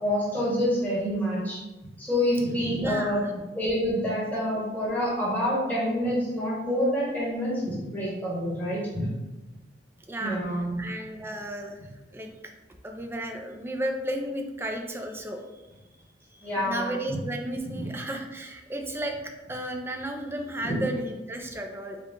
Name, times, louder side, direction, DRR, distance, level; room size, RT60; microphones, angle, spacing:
voice 1, 0.0-1.6 2.0-3.2 3.5-9.1 10.2-10.9 16.4-17.2 20.6-20.8, equal, 10° left, -8 dB, 1.2 m, -27 dB
voice 2, 2.8-3.3 4.5-4.6 10.1-10.4 10.8-12.3 12.8-15.4 16.3-19.2 19.5-22.0, right 1 dB, 15° right, 3 dB, 0.4 m, -33 dB
4.5 x 2.3 x 3.7 m, 1.1 s
head